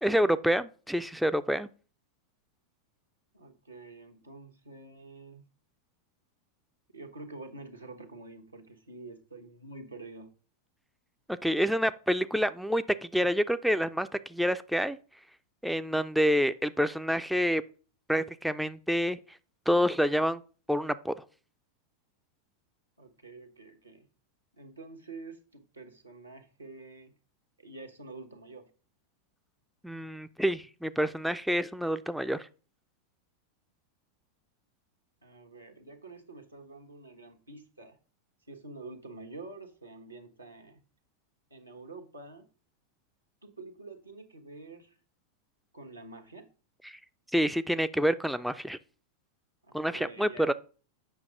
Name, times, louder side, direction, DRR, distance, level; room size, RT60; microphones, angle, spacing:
voice 1, 0.0-1.7 11.4-15.0 15.6-17.6 18.1-19.4 19.7-20.4 20.7-21.2 29.8-32.5 46.8-47.0 47.3-48.8 49.7-50.5, equal, ahead, 0.3 m, -28 dB
voice 2, 3.3-5.5 6.9-10.3 23.0-24.1 24.5-27.1 27.6-28.7 35.2-38.0 38.5-40.8 41.5-42.5 43.4-45.0 45.7-46.5 49.6-50.5, right 3 dB, 85° right, 1.2 m, -47 dB
7.9 x 5.8 x 3.8 m
figure-of-eight pair, 90°, 0 cm